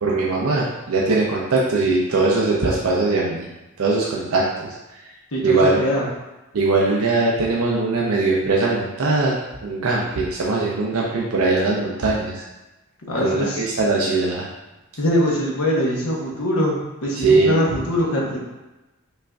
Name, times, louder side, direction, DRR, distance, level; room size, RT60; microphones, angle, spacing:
voice 1, 0.0-3.5 3.8-4.7 5.4-5.8 6.5-12.4 13.2-14.5 17.2-17.6, right 3 dB, 80° right, -3 dB, 0.6 m, -20 dB
voice 2, 5.3-6.0 13.1-13.7 15.0-18.4, equal, 80° left, -3 dB, 0.9 m, -22 dB
5.3 x 2.5 x 2.3 m, 1.0 s
head